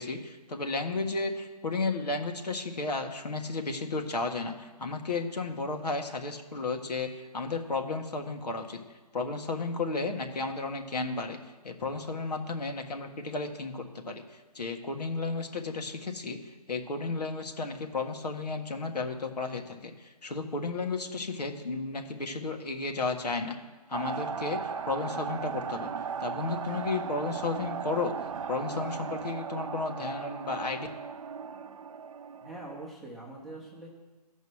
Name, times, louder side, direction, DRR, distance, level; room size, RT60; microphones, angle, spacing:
voice 1, 0.0-8.8 9.1-11.4 11.6-16.4 16.7-23.6 23.9-25.9 26.2-28.1 28.5-30.9, left 3 dB, 80° left, 4 dB, 1.6 m, -33 dB
sound 1, 23.9-32.9, right 6 dB, 55° right, 0.6 m, -37 dB
voice 2, 31.4-31.9 32.4-33.9, right 2 dB, ahead, -4 dB, 0.8 m, -45 dB
13.5 x 5.4 x 6.3 m, 1.3 s
hypercardioid pair, 160°, 20 cm